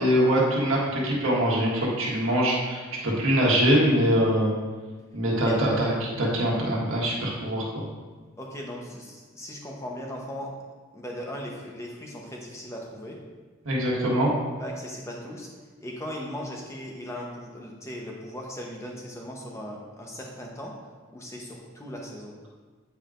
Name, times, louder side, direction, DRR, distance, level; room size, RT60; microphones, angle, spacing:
voice 1, 0.0-4.5 5.1-7.8 13.6-14.3, equal, 75° right, -4 dB, 1.5 m, -23 dB
voice 2, 8.4-10.5 10.9-13.2 14.6-15.5 15.8-20.7 21.1-22.3, equal, 15° left, -1 dB, 0.8 m, -38 dB
8.8 x 4.8 x 2.5 m, 1.4 s
head